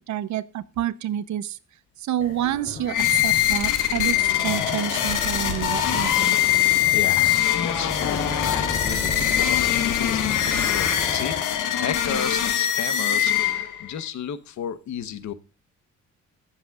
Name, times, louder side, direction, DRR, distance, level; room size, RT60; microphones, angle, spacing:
voice 1, 0.1-1.6 2.0-2.9 3.2-4.2 4.4-6.4, right 11 dB, 70° right, 16 dB, 0.9 m, -28 dB
sound 1, 2.2-11.4, left 3 dB, 30° left, 3.2 m, -34 dB
sound 2, 2.9-13.9, left 11 dB, 90° left, 1.9 m, -23 dB
voice 2, 6.9-15.3, left 8 dB, 70° left, 13 dB, 1.2 m, -33 dB
22.0 x 7.4 x 2.4 m, 0.30 s
cardioid pair, 90°, 30 cm